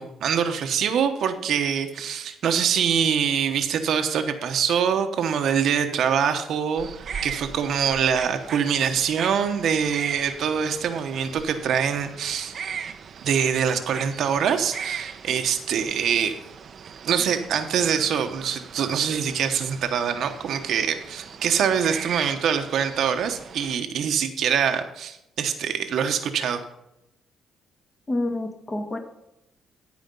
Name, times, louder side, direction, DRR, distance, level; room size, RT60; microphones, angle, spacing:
voice 1, 0.0-12.5 13.2-16.4 17.0-26.6, right 7 dB, 70° right, 7 dB, 1.0 m, -24 dB
sound 1, 6.8-23.8, right 7 dB, 55° right, 0.7 m, -39 dB
voice 2, 28.1-29.0, left 2 dB, 25° left, 2 dB, 2.1 m, -28 dB
14.5 x 5.0 x 5.4 m, 0.85 s
cardioid pair, 90°, 0 cm